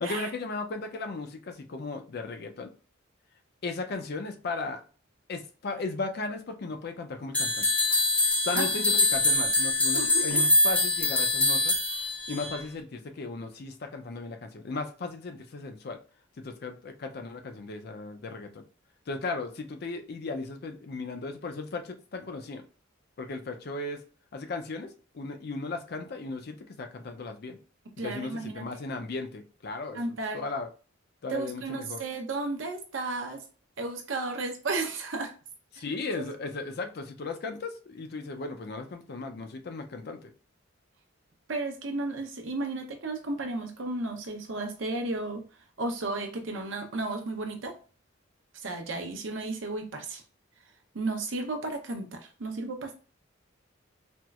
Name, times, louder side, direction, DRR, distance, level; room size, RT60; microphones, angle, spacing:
voice 1, 0.0-2.7 3.6-4.8 5.3-7.7 8.4-11.7 12.3-16.0 16.4-18.6 19.1-22.6 23.2-24.0 24.3-27.6 28.0-30.0 30.3-30.7 31.2-32.0 35.7-40.3, left 3 dB, 55° left, 6 dB, 0.5 m, -36 dB
sound 1, 7.3-12.6, left 2 dB, 5° left, 0.6 m, -24 dB
voice 2, 9.9-10.4 28.0-28.6 29.9-30.4 31.3-33.4 33.8-35.3 41.5-45.4 45.8-47.8 48.6-50.2 50.9-53.0, right 2 dB, 70° right, 4 dB, 0.7 m, -33 dB
4.3 x 2.0 x 2.3 m, 0.37 s
head